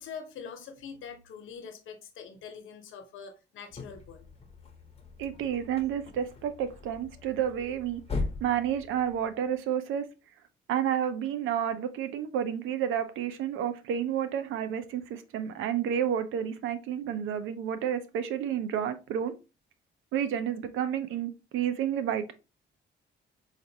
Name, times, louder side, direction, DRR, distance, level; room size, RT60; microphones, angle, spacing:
voice 1, 0.0-4.2, left 6 dB, 80° left, 0.9 m, -44 dB
sound 1, 3.7-9.5, left 3 dB, 30° left, 0.9 m, -40 dB
voice 2, 5.2-10.0 10.7-19.3 20.1-22.3, right 9 dB, 85° right, 0.6 m, -30 dB
4.5 x 2.5 x 2.7 m
cardioid pair, 90°, 20 cm